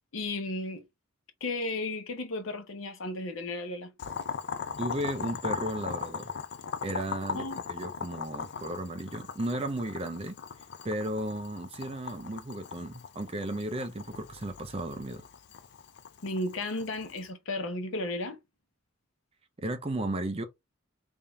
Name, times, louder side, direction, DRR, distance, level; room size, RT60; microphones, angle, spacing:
voice 1, 0.1-0.8 1.4-3.9 7.3-7.6 16.2-18.4, left 2 dB, 80° left, 0.8 m, -34 dB
Boiling, 4.0-17.3, left 6 dB, 55° left, 0.5 m, -39 dB
voice 2, 4.8-6.3 6.8-10.4 10.8-15.2 19.6-20.4, right 1 dB, 30° right, 0.6 m, -34 dB
3.5 x 2.7 x 3.5 m
head